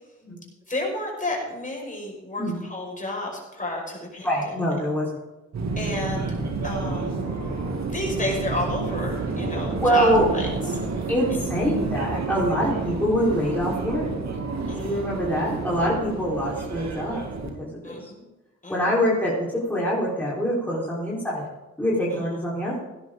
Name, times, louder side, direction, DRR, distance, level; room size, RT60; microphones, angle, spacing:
voice 1, 0.7-4.3 5.8-6.3 6.6-7.3 7.9-10.8 14.7-15.1 17.8-18.3 18.6-19.0 22.1-22.2, left 1 dB, 25° left, -1 dB, 5.5 m, -31 dB
voice 2, 4.2-5.2 9.8-10.2 11.1-14.1 14.8-17.2 17.6-18.1 18.7-21.4 21.8-22.8, equal, 5° left, -6 dB, 4.2 m, -24 dB
Subway metro underground, 5.5-17.5, right 3 dB, 70° right, 2.5 m, -29 dB
16.5 x 10.5 x 3.9 m, 1.1 s
cardioid pair, 75°, 29 cm